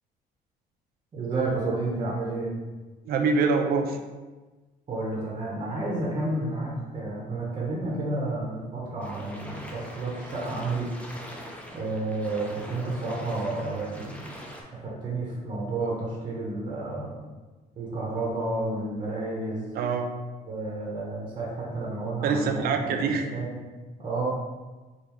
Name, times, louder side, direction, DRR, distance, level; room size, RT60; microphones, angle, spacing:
voice 1, 1.1-2.5 4.9-10.9 11.7-14.2 14.8-17.1 17.8-19.7 20.5-23.6 24.0-24.3, right 2 dB, 30° right, -4 dB, 0.7 m, -31 dB
voice 2, 3.1-4.0 19.7-20.1 22.2-23.3, right 4 dB, 65° right, 5 dB, 0.4 m, -25 dB
sound 1, 9.0-14.6, equal, 10° left, 0.5 m, -43 dB
3.5 x 2.4 x 2.9 m, 1.3 s
cardioid pair, 110°, 17 cm